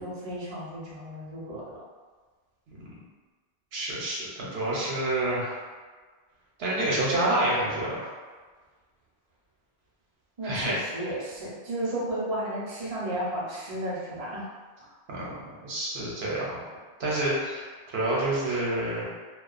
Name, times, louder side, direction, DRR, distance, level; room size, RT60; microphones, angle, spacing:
voice 1, 0.0-1.6 10.4-14.5, right 1 dB, 40° right, -7 dB, 0.6 m, -33 dB
voice 2, 3.7-5.6 6.6-8.1 10.4-10.7 15.1-15.3 15.6-16.6 17.0-19.0, right 1 dB, 75° right, -6 dB, 0.9 m, -28 dB
2.3 x 2.2 x 2.4 m, 1.4 s
omnidirectional pair, 1.1 m